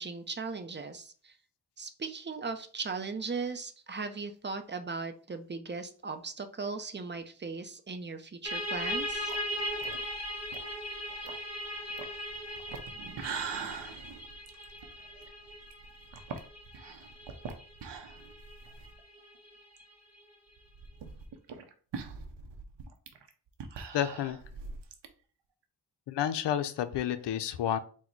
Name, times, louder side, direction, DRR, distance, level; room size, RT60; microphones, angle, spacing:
voice 1, 0.0-1.3 1.8-9.3, right 4 dB, 25° right, 8 dB, 0.5 m, -38 dB
sound 1, 8.4-19.8, equal, 35° left, 1.8 m, -39 dB
sound 2, 8.8-19.0 19.3-19.4 19.8-19.9 20.6-25.1, right 5 dB, 75° right, 0.7 m, -43 dB
voice 2, 23.9-24.4 26.1-27.8, left 10 dB, 75° left, 11 dB, 0.5 m, -30 dB
4.0 x 2.2 x 4.4 m, 0.42 s
cardioid pair, 65°, 42 cm